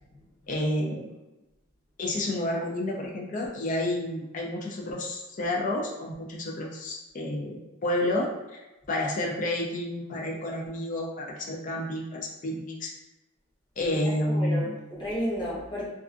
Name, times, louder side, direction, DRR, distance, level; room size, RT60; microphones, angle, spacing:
voice 1, 0.5-1.1 2.0-8.6 8.9-12.9 13.8-14.7, left 1 dB, 40° left, 0 dB, 0.4 m, -30 dB
voice 2, 13.9-15.9, equal, 20° left, -7 dB, 0.8 m, -33 dB
2.4 x 2.3 x 2.4 m, 1.0 s
head